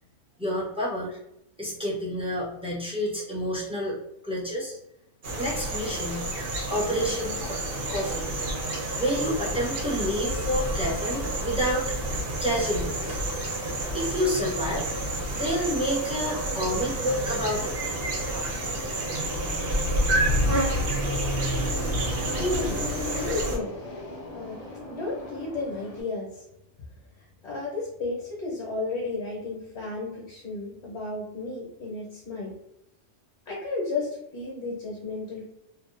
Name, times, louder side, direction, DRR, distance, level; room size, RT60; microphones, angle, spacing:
voice 1, 0.4-1.2 1.6-4.0 4.2-4.8 5.3-6.3 6.7-7.6 7.9-8.3 9.0-11.9 12.4-13.2 13.9-14.9 15.3-17.7, equal, 5° right, -5 dB, 0.5 m, -29 dB
sound 1, 5.2-23.6, right 1 dB, 65° right, 1.0 m, -29 dB
Fixed-wing aircraft airplane, 16.7-26.0, equal, 45° left, 0.5 m, -37 dB
voice 2, 22.4-23.8 24.3-24.6 24.9-26.4 27.4-32.5 33.5-35.4, left 3 dB, 65° left, -3 dB, 1.1 m, -33 dB
2.7 x 2.2 x 2.5 m, 0.81 s
omnidirectional pair, 1.2 m